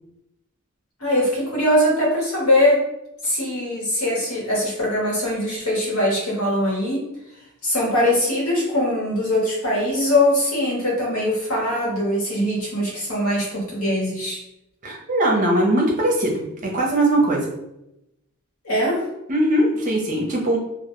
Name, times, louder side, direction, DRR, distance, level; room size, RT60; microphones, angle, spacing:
voice 1, 1.0-2.8 3.2-7.1 7.6-14.4 18.6-19.1, left 1 dB, 85° left, -4 dB, 1.0 m, -21 dB
voice 2, 14.8-17.5 19.3-20.6, right 1 dB, 35° right, -2 dB, 0.6 m, -20 dB
2.1 x 2.1 x 2.9 m, 0.87 s
head